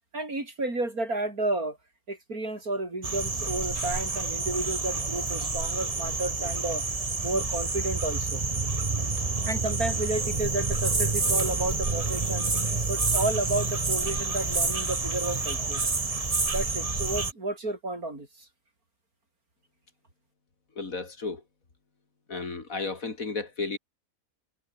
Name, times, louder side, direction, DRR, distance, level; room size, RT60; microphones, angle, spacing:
voice 1, 0.1-1.8 2.1-6.8 7.2-8.4 9.5-12.5 12.9-15.8 16.5-18.3, right 2 dB, 75° right, 6.8 m, -31 dB
sound 1, 3.0-17.3, right 3 dB, 25° right, 1.4 m, -28 dB
voice 2, 20.8-21.4 22.3-23.8, left 4 dB, 65° left, 3.3 m, -33 dB
omnidirectional pair, 1.5 m